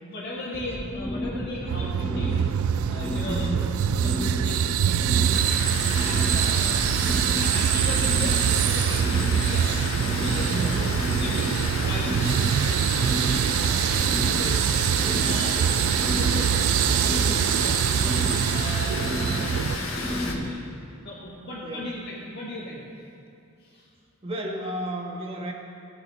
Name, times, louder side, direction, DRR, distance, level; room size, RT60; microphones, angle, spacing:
voice 1, 0.0-2.5 2.9-3.7 4.0-5.3 5.9-6.9 7.4-9.8 10.1-13.4 13.9-14.1 15.1-18.0 18.4-20.7 21.0-22.8 23.6-23.9, left 1 dB, 55° left, -8 dB, 2.0 m, -37 dB
sound 1, 0.5-20.5, left 1 dB, 5° left, 0.9 m, -33 dB
sound 2, 1.7-19.8, right 9 dB, 85° right, 0.3 m, -24 dB
voice 2, 3.2-3.7 10.5-10.9 14.3-15.8 21.6-21.8 24.2-25.5, right 1 dB, 30° right, 0 dB, 1.5 m, -33 dB
Water, 5.3-20.3, left 3 dB, 75° left, 1.4 m, -33 dB
19.0 x 7.7 x 4.2 m, 2.6 s
head